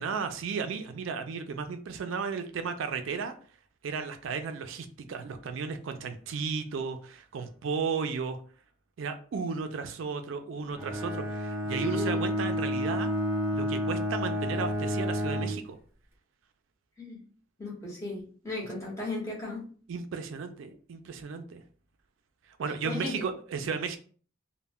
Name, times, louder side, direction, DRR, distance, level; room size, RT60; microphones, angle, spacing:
voice 1, 0.0-3.4 3.8-8.4 9.0-13.1 13.5-15.8 19.9-21.6 22.6-24.0, right 5 dB, 70° right, 7 dB, 0.3 m, -34 dB
Bowed string instrument, 10.8-15.7, equal, 10° right, 0.6 m, -30 dB
voice 2, 11.7-12.2 17.0-17.2 17.6-19.7 22.8-23.2, left 2 dB, 15° left, -4 dB, 0.9 m, -36 dB
2.1 x 2.1 x 3.4 m, 0.42 s
head